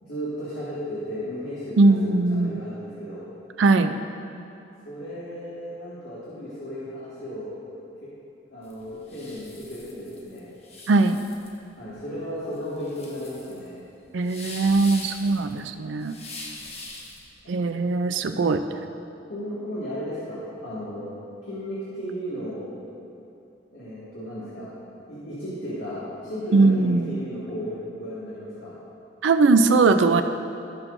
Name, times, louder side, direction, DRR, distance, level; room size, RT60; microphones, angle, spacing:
voice 1, 0.0-3.3 4.8-7.5 8.5-10.5 11.8-13.8 19.3-21.1 21.4-22.7 23.7-24.7 25.1-28.7, equal, 85° left, -10 dB, 2.0 m, -34 dB
voice 2, 1.8-2.6 3.6-4.0 10.9-11.2 14.1-16.2 17.5-18.6 26.5-27.2 29.2-30.2, right 3 dB, 80° right, 8 dB, 0.4 m, -20 dB
sound 1, 8.6-17.3, left 2 dB, 35° left, 1.1 m, -42 dB
18.0 x 6.1 x 2.6 m, 2.8 s
head